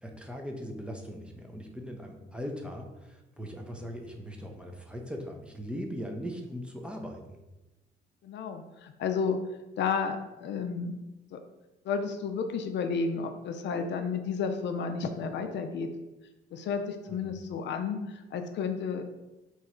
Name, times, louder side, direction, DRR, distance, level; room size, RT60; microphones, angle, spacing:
voice 1, 0.0-7.4 17.1-17.3, equal, 5° right, 2 dB, 0.5 m, -39 dB
voice 2, 8.2-9.4 9.8-11.0 11.3-11.4 11.9-15.9 16.5-19.1, left 5 dB, 65° left, 7 dB, 0.4 m, -32 dB
3.0 x 2.4 x 4.2 m, 1.0 s
cardioid pair, 90°, 20 cm